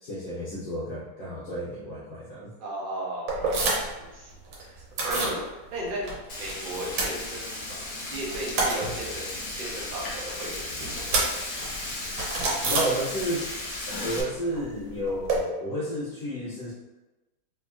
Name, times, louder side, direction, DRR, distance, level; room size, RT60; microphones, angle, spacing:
voice 1, 0.0-2.5 12.6-13.5 14.0-16.7, equal, 60° left, -8 dB, 1.0 m, -31 dB
voice 2, 2.6-4.3 4.6-6.1 6.4-11.1, right 1 dB, 55° right, -4 dB, 0.5 m, -36 dB
sound 1, 3.3-4.1 4.3-5.4 5.7-6.5 6.8-7.8 8.1-13.5 13.8-15.4, right 3 dB, 80° right, 1.5 m, -30 dB
Frying (food), 6.3-14.2, left 2 dB, 75° left, 0.5 m, -35 dB
3.4 x 3.3 x 2.5 m, 1.1 s
omnidirectional pair, 2.1 m